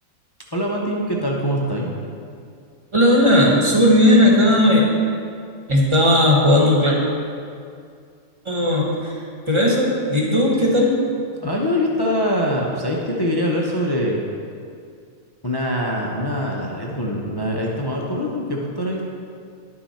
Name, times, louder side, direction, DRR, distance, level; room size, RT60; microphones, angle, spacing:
voice 1, 0.5-1.9 11.4-14.2 15.4-19.1, equal, 25° left, -2 dB, 0.5 m, -23 dB
voice 2, 2.9-4.8 5.7-7.0 8.4-9.1 9.5-11.0, left 1 dB, 20° right, -3 dB, 1.3 m, -16 dB
11.0 x 6.0 x 4.2 m, 2.3 s
omnidirectional pair, 1.5 m